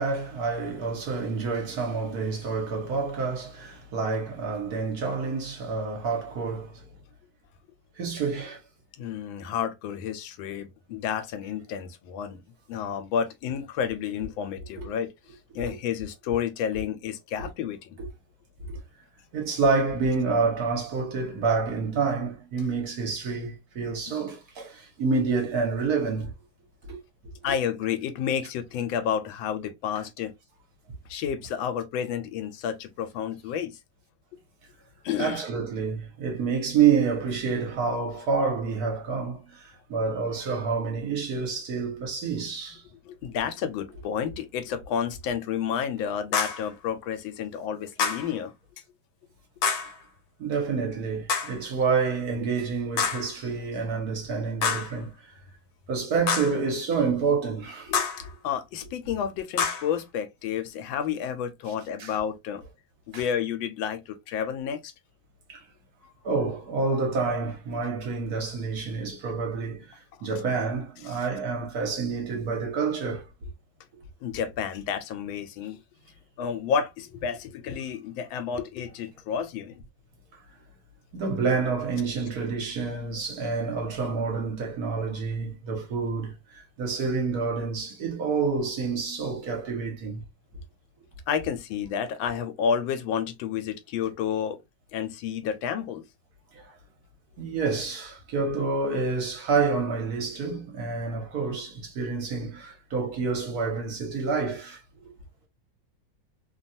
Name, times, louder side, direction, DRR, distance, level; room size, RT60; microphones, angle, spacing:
voice 1, 0.0-6.9 8.0-8.6 14.8-14.9 15.6-15.7 17.4-17.5 18.0-18.1 18.7-18.8 19.3-26.3 26.8-27.0 27.4-27.6 35.2-42.8 50.4-55.3 55.9-58.0 62.0-62.1 63.1-63.2 65.5-65.6 66.2-73.2 81.1-90.2 96.5-96.7 97.4-105.1, right 4 dB, 60° right, 1.3 m, -28 dB
voice 2, 9.0-12.4 12.7-15.1 15.5-17.9 27.4-30.3 31.1-33.7 35.0-35.4 43.0-48.5 57.9-62.6 63.1-64.9 71.0-71.2 74.2-75.8 76.4-79.8 91.3-94.6 94.9-96.0, left 8 dB, 90° left, 1.4 m, -30 dB
sound 1, 46.3-46.7 48.0-48.3 49.6-50.0 51.3-51.6 53.0-53.3 54.6-55.0 56.3-56.6 57.9-58.3 59.6-59.9, left 5 dB, 65° left, 1.0 m, -27 dB
3.2 x 2.3 x 2.6 m
omnidirectional pair, 2.1 m